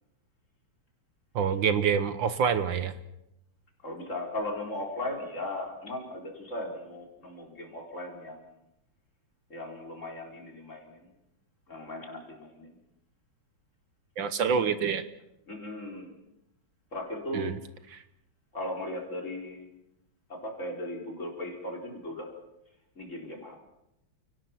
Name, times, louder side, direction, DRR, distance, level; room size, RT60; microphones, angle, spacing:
voice 1, 1.4-2.9 14.2-15.0 17.3-17.6 17.9-18.0, right 6 dB, 70° right, 11 dB, 1.8 m, -26 dB
voice 2, 3.8-8.4 9.5-11.1 11.7-12.7 15.5-16.1 16.9-17.5 18.5-19.6 20.3-22.3 23.0-23.6, left 1 dB, 35° left, 1 dB, 4.7 m, -37 dB
30.0 x 18.5 x 5.9 m, 0.86 s
omnidirectional pair, 2.2 m